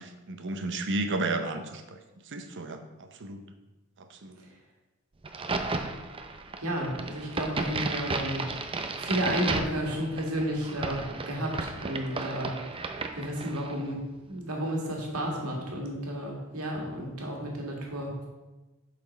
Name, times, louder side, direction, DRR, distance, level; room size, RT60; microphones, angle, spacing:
voice 1, 0.0-2.0 2.3-3.4 4.0-4.4, right 2 dB, 55° right, 7 dB, 0.7 m, -33 dB
Crack, 5.2-13.8, right 3 dB, 25° right, 0.5 m, -34 dB
voice 2, 6.6-8.4 9.0-12.5 13.2-14.0 14.3-18.3, equal, 85° right, -1 dB, 1.8 m, -32 dB
7.4 x 4.2 x 5.2 m, 1.1 s
head